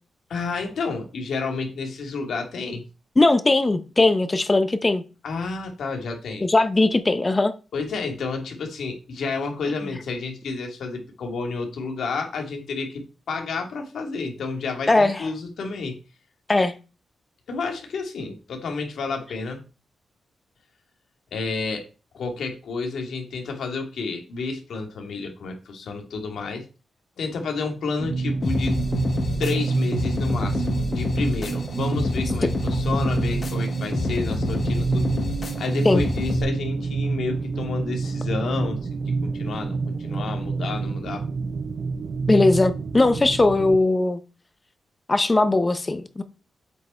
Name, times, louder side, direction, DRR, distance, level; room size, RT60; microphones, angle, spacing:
voice 1, 0.3-2.8 5.2-6.4 7.7-16.0 17.5-19.6 21.3-21.9 22.1-26.6 27.2-28.8 29.4-35.1 35.6-41.2, left 4 dB, 70° left, 2.3 m, -30 dB
voice 2, 3.2-5.0 6.4-7.5 14.9-15.3 16.5-16.7 35.8-36.0 42.3-44.2 45.1-46.2, left 2 dB, 20° left, 0.8 m, -19 dB
sound 1, 28.0-43.8, right 4 dB, 50° right, 0.6 m, -27 dB
sound 2, 28.4-36.4, left 3 dB, 40° left, 1.5 m, -28 dB
8.1 x 5.5 x 4.4 m
wide cardioid pair, 125°, 0 cm